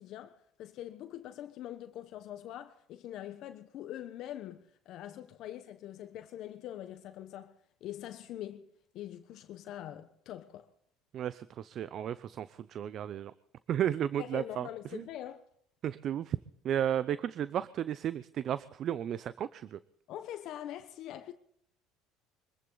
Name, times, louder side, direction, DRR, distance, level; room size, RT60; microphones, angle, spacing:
voice 1, 0.0-7.5 7.8-8.7 8.9-10.7 14.2-15.4 20.1-21.3, left 12 dB, 60° left, 1.0 m, -43 dB
voice 2, 11.1-13.3 13.7-15.0 15.8-16.4 16.6-19.8, right 10 dB, 50° right, 0.6 m, -33 dB
24.0 x 14.5 x 4.0 m
supercardioid pair, 100°, 0 cm